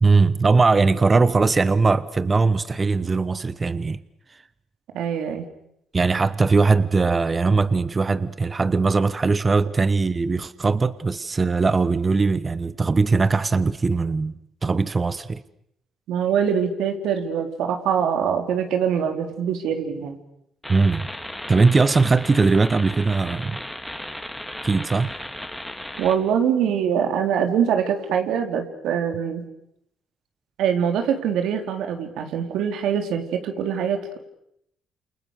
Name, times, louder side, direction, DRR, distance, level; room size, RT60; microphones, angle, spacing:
voice 1, 0.0-4.0 5.9-14.3 14.6-15.4 20.7-21.1 21.5-23.5 24.6-25.1, right 4 dB, 30° right, 1.1 m, -20 dB
voice 2, 4.9-5.5 16.1-20.2 26.0-29.4 30.6-34.2, right 8 dB, 85° right, 3.8 m, -23 dB
sound 1, 20.6-26.2, left 1 dB, 5° left, 3.3 m, -35 dB
29.5 x 28.0 x 6.6 m
cardioid pair, 90°, 0 cm